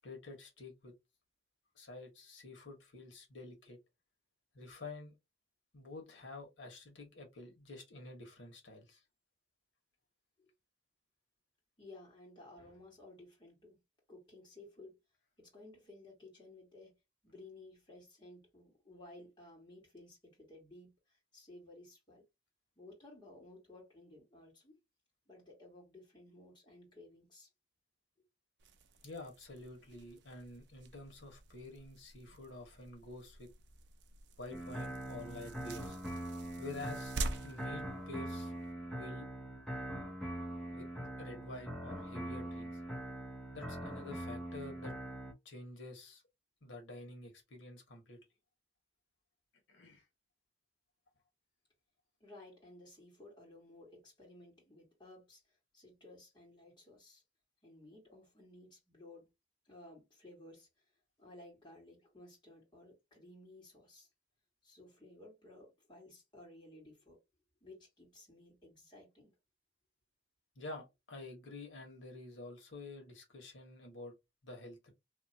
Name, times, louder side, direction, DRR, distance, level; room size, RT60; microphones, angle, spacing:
voice 1, 0.0-0.9 1.7-3.8 4.5-5.1 5.7-9.0 29.0-33.5 34.4-36.0 36.6-37.1 37.4-38.5 38.9-39.3 40.7-40.9 41.2-42.8 43.5-44.9 45.4-46.2 46.6-48.2 49.7-50.0 70.5-74.1 74.4-74.9, left 2 dB, 80° left, 1.4 m, -49 dB
voice 2, 11.8-13.8 14.1-15.0 15.4-17.0 17.2-22.2 22.8-24.8 25.3-27.5 52.2-55.4 55.7-57.2 57.6-59.3 59.7-60.7 61.2-64.1 64.6-67.2 67.6-69.3, left 2 dB, 25° left, 1.9 m, -56 dB
sound 1, 28.6-38.7, right 2 dB, 60° right, 0.5 m, -47 dB
sound 2, 34.5-45.3, right 1 dB, 5° left, 0.6 m, -42 dB
2.9 x 2.7 x 2.8 m
head